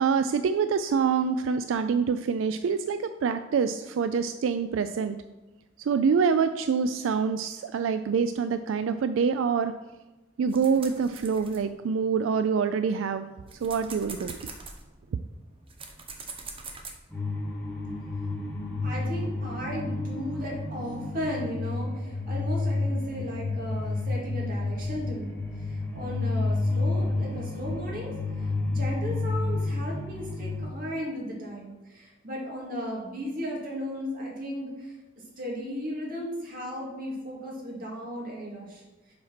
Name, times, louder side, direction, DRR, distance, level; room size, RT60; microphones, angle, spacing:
voice 1, 0.0-5.2 5.9-9.7 10.4-13.2 13.6-14.4, right 6 dB, 85° right, 10 dB, 0.3 m, -26 dB
sound 1, 10.5-12.3 12.8-16.9, right 4 dB, 30° right, 0.9 m, -43 dB
sound 2, 17.1-30.6, left 2 dB, 10° left, 2.3 m, -30 dB
voice 2, 18.8-28.1 28.4-34.9 35.4-38.8, equal, 45° right, -3 dB, 2.2 m, -35 dB
7.6 x 4.3 x 5.8 m, 1.1 s
head